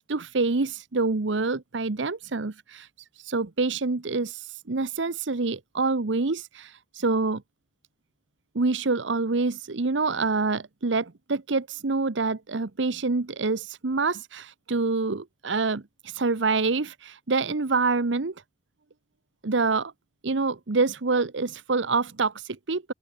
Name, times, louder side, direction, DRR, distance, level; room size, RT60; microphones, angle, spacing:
voice 1, 0.0-2.9 3.2-7.4 8.5-18.3 19.4-19.9 20.2-22.9, right 3 dB, 85° right, 0.9 m, -26 dB
open air
head